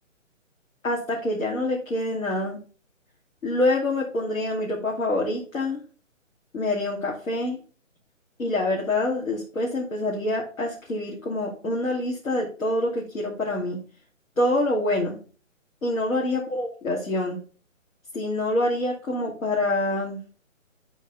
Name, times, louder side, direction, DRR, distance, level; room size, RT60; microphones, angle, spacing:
voice 1, 0.8-2.6 3.4-5.8 6.5-7.6 8.4-13.8 14.4-15.2 15.8-17.4 18.1-20.2, left 1 dB, 75° left, -2 dB, 2.7 m, -26 dB
11.5 x 4.1 x 3.5 m, 0.38 s
hypercardioid pair, 180°, 39 cm